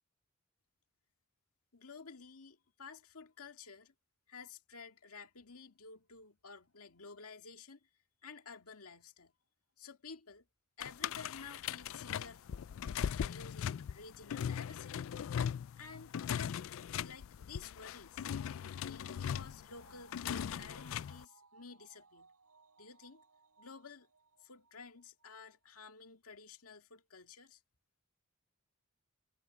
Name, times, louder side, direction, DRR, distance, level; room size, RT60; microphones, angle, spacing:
voice 1, 1.7-3.9 4.3-7.9 8.2-9.3 9.8-10.5 10.8-12.7 13.2-15.1 15.8-16.7 16.9-18.3 18.8-22.3 22.8-23.2 23.6-24.1 24.4-27.6, left 5 dB, 85° left, 2.0 m, -52 dB
sound 1, 10.8-21.2, left 8 dB, 65° left, 0.3 m, -39 dB
sound 2, 18.6-25.3 25.6-25.7, right 4 dB, 90° right, 8.0 m, -66 dB
head